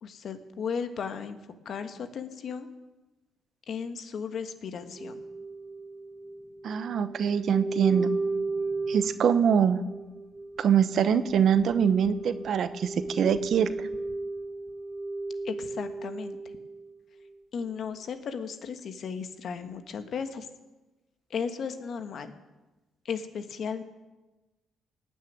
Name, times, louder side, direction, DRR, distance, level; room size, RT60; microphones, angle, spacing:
voice 1, 0.0-1.4 1.6-2.7 3.7-5.2 15.4-16.4 17.5-20.5 21.3-22.3 23.0-23.8, left 6 dB, 60° left, 9 dB, 1.4 m, -35 dB
sound 1, 5.0-16.9 17.3-17.4, right 3 dB, 15° right, 2.3 m, -35 dB
voice 2, 6.6-8.1 8.9-9.8 10.6-13.7, right 8 dB, 65° right, 13 dB, 0.9 m, -24 dB
18.0 x 6.6 x 9.4 m, 1.1 s
cardioid pair, 90°, 0 cm